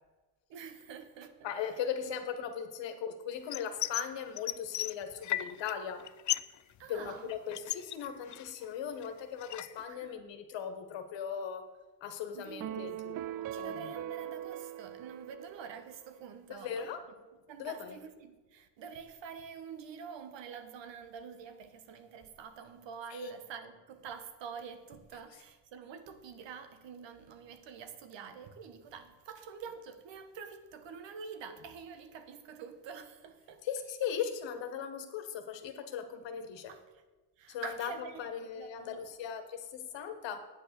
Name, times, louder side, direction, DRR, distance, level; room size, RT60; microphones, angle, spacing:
voice 1, 0.5-1.5 2.0-2.1 6.8-7.3 9.9-10.2 12.3-16.9 17.5-33.6 36.7-37.0 37.4-39.1, right 6 dB, 75° right, 1.4 m, -47 dB
voice 2, 1.4-6.1 6.9-11.6 12.0-13.2 13.6-13.9 16.5-17.0 17.6-18.0 23.1-23.3 33.6-36.7 37.5-37.9 38.2-40.5, left 8 dB, 80° left, 1.5 m, -38 dB
sound 1, 3.5-4.1 4.4-5.7 6.0-6.6 6.8-8.7 9.0-9.8, left 13 dB, 45° left, 0.4 m, -35 dB
sound 2, 12.6-16.1, right 12 dB, 50° right, 0.5 m, -41 dB
9.2 x 8.0 x 6.8 m
cardioid pair, 90°, 43 cm